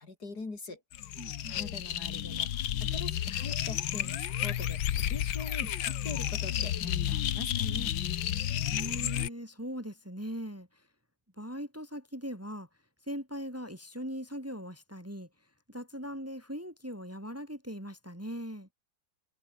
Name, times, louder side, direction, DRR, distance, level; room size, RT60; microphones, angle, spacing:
voice 1, 0.0-7.9, left 3 dB, 55° left, 4.4 m, -43 dB
sound 1, 0.9-9.3, left 11 dB, 75° left, 1.7 m, -32 dB
voice 2, 1.2-1.6 8.7-10.9 11.4-12.7 13.0-15.3 15.7-18.7, equal, 5° right, 2.8 m, -40 dB
omnidirectional pair, 2.1 m